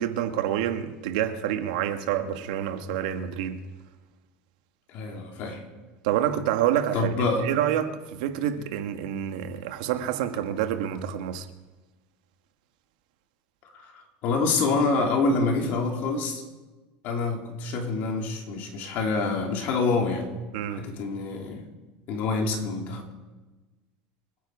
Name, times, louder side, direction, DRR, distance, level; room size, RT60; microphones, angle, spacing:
voice 1, 0.0-3.6 6.0-11.5 20.5-20.8, right 10 dB, 80° right, 1.5 m, -28 dB
voice 2, 4.9-5.6 6.9-7.5 13.7-16.4 17.0-20.3 20.7-21.7 22.1-23.1, left 3 dB, 50° left, 3.2 m, -27 dB
26.0 x 10.5 x 4.8 m
supercardioid pair, 150°, 4 cm